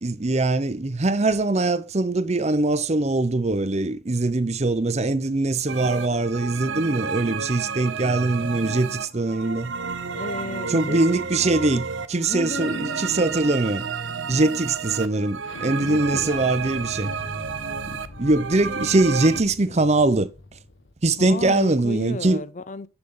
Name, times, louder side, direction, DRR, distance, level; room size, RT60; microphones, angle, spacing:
voice 1, 0.0-9.7 10.7-13.9 14.3-17.1 17.9-20.3 21.0-22.4, right 2 dB, 35° right, 0.6 m, -22 dB
sound 1, 5.7-19.4, right 5 dB, 75° right, 0.8 m, -31 dB
voice 2, 10.1-11.0 12.3-13.2 15.8-16.5 19.7-19.9 21.2-22.9, left 3 dB, 40° left, 0.6 m, -33 dB
Explosion, 15.4-20.9, left 2 dB, 70° left, 1.0 m, -43 dB
8.1 x 7.0 x 3.7 m
head